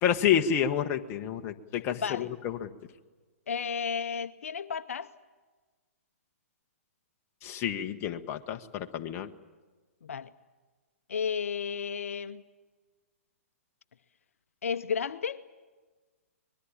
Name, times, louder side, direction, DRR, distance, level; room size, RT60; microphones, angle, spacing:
voice 1, 0.0-2.7 7.4-9.3, left 9 dB, 30° left, 1.4 m, -29 dB
voice 2, 2.0-2.3 3.5-5.1 10.0-10.3 11.1-12.4 14.6-15.4, left 6 dB, 70° left, 0.8 m, -32 dB
24.5 x 21.0 x 8.7 m
hypercardioid pair, 125°, 8 cm